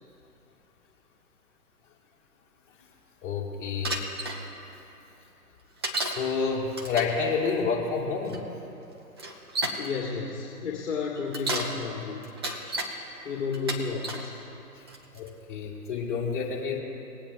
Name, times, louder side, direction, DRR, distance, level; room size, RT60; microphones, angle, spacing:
voice 1, 3.2-4.0 5.9-8.3 15.1-16.8, left 5 dB, 30° left, -4 dB, 2.9 m, -29 dB
Bicycle, 3.8-4.4 5.8-6.2 6.7-7.2 8.3-8.4 9.2-9.9 11.2-11.7 12.2-12.9 13.5-14.3 14.9-15.3, right 1 dB, 15° right, 0.6 m, -31 dB
voice 2, 9.8-12.3 13.2-14.3, left 5 dB, 45° left, -3 dB, 2.1 m, -32 dB
21.0 x 8.9 x 2.9 m, 2.9 s
figure-of-eight pair, 145°, 48 cm